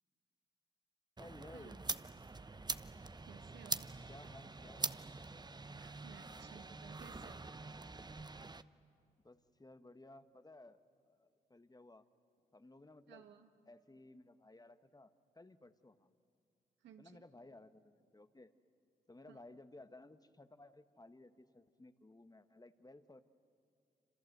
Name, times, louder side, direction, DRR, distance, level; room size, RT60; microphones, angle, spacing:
voice 1, 1.2-2.0 4.1-4.9 9.2-12.0 12.5-13.2 13.7-16.1 17.0-18.5 19.1-23.2, left 2 dB, 20° left, 10 dB, 1.4 m, -58 dB
sound 1, 1.2-8.6, right 3 dB, 25° right, 0.9 m, -44 dB
voice 2, 3.2-3.9 5.8-7.4 13.1-13.5 16.8-17.2 19.3-19.4, right 8 dB, 80° right, 6 dB, 1.7 m, -58 dB
27.0 x 26.5 x 8.0 m, 2.4 s
supercardioid pair, 50°, 18 cm